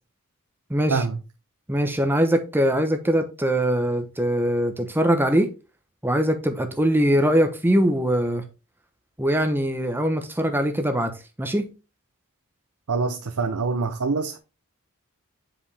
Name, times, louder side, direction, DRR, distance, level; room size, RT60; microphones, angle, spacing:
voice 1, 0.7-1.0 1.7-5.5 6.0-8.4 9.2-11.1 11.4-11.7, equal, 10° right, 0.9 m, -22 dB
voice 2, 12.9-14.4, right 4 dB, 85° right, 0.7 m, -25 dB
7.5 x 5.1 x 3.4 m
head